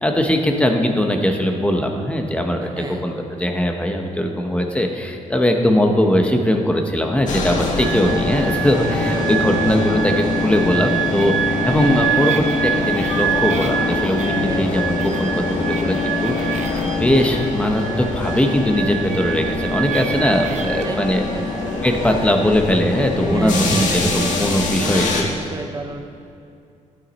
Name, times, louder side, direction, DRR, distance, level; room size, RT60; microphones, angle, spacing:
voice 1, 0.0-3.1 3.4-21.2 21.8-25.4, left 1 dB, 10° left, 3 dB, 1.0 m, -20 dB
voice 2, 2.6-3.1 8.9-9.5 14.4-14.7 20.4-21.5 23.2-26.0, right 3 dB, 30° right, 3 dB, 0.7 m, -31 dB
sound 1, 7.3-25.2, left 3 dB, 70° left, 1.6 m, -24 dB
sound 2, 7.8-24.4, right 10 dB, 60° right, 0.8 m, -28 dB
13.5 x 9.3 x 4.2 m, 2.4 s
cardioid pair, 120°, 13 cm